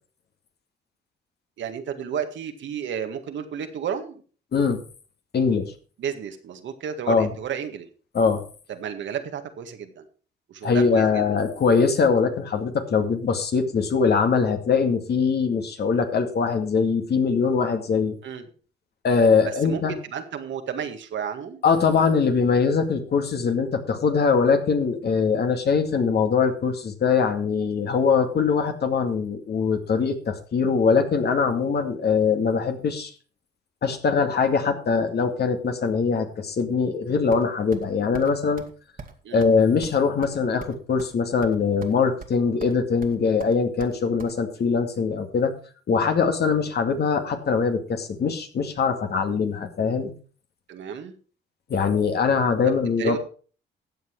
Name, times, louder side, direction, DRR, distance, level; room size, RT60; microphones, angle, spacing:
voice 1, 1.6-4.2 6.0-7.9 8.7-10.0 10.5-11.2 18.2-18.5 19.4-21.6 39.2-39.5 50.7-51.1 53.0-53.2, right 8 dB, 70° right, 7 dB, 1.9 m, -32 dB
voice 2, 5.3-5.7 7.1-7.3 8.1-8.4 10.6-18.2 19.0-20.0 21.6-33.1 33.8-38.6 39.3-45.5 45.9-50.1 51.7-53.2, left 5 dB, 55° left, 5 dB, 2.3 m, -22 dB
sound 1, 37.3-37.9 38.1-38.3 38.6-38.7 39.0-39.1 39.4-39.5 39.8-41.1 41.4-42.0 42.2-42.8 43.0-44.3, right 5 dB, 45° right, 2.0 m, -41 dB
13.5 x 8.1 x 4.7 m, 0.40 s
cardioid pair, 90°, 20 cm